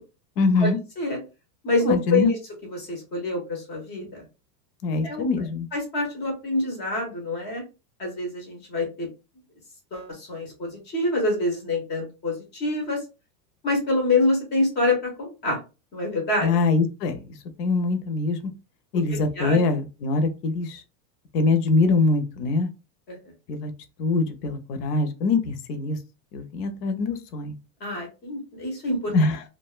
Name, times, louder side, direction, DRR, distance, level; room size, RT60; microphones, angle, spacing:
voice 1, 0.4-0.8 1.8-2.3 4.8-5.7 16.4-18.5 18.9-20.8 21.3-22.7 23.5-23.7 24.0-26.0 26.3-27.5 29.1-29.4, left 3 dB, 65° left, 9 dB, 0.7 m, -23 dB
voice 2, 1.6-2.4 2.7-4.2 5.0-5.3 5.7-7.6 8.0-9.1 9.9-13.0 13.6-15.6 15.9-16.5 19.1-19.6 23.1-23.2 27.8-29.1, left 2 dB, 20° left, 1 dB, 0.6 m, -26 dB
2.5 x 2.2 x 2.3 m, 0.30 s
supercardioid pair, 150°, 50 cm